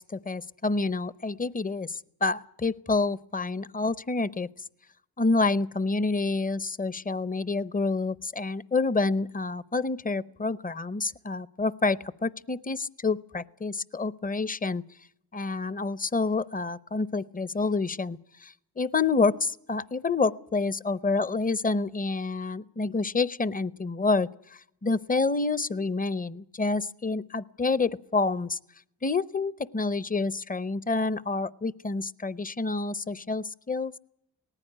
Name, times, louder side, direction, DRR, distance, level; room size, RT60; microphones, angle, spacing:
voice 1, 0.0-4.5 5.2-14.8 15.3-28.6 29.0-33.9, left 3 dB, 20° left, 18 dB, 0.7 m, -28 dB
18.5 x 15.0 x 9.9 m, 0.74 s
cardioid pair, 40°, 40 cm